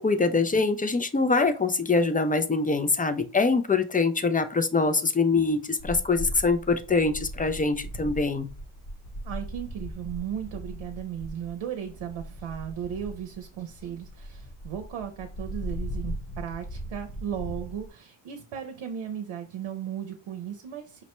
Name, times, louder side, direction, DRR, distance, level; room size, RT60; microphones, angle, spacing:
voice 1, 0.0-8.5, left 4 dB, 20° left, 9 dB, 0.3 m, -24 dB
sound 1, 5.8-17.9, equal, 45° left, 1.0 m, -38 dB
voice 2, 9.2-21.0, right 9 dB, 75° right, 6 dB, 0.7 m, -36 dB
5.3 x 2.1 x 2.9 m, 0.35 s
cardioid pair, 75°, 49 cm